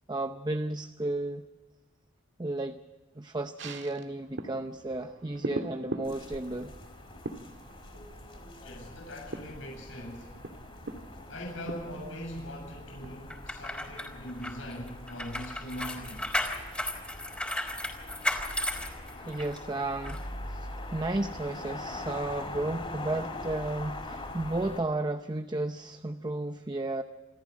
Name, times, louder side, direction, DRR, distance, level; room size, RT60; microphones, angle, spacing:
voice 1, 0.1-1.4 2.4-2.8 3.2-6.7 19.2-20.2 20.5-27.0, right 2 dB, 20° right, 8 dB, 0.7 m, -33 dB
sound 1, 3.6-15.3 15.6-15.7, right 2 dB, 65° right, 1.7 m, -43 dB
sound 2, 6.0-24.8, left 2 dB, 30° left, 4.4 m, -43 dB
voice 2, 8.6-10.3 11.3-16.3, equal, 75° left, -1 dB, 7.6 m, -41 dB
sound 3, 13.3-19.6 20.0-20.2, left 1 dB, 5° left, 3.7 m, -34 dB
26.5 x 14.0 x 7.5 m, 1.2 s
head